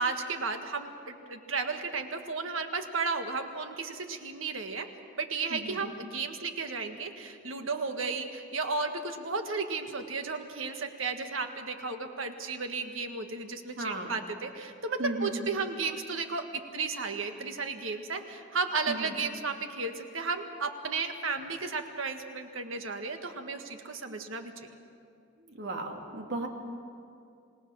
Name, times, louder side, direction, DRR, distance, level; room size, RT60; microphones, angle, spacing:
voice 1, 0.0-4.9 5.2-16.4 16.7-24.5, right 4 dB, 80° right, 6 dB, 1.6 m, -34 dB
voice 2, 13.8-14.1 15.0-15.5 18.9-19.1 25.4-26.5, right 1 dB, 60° right, 2 dB, 2.4 m, -36 dB
28.0 x 18.5 x 6.3 m, 2.4 s
head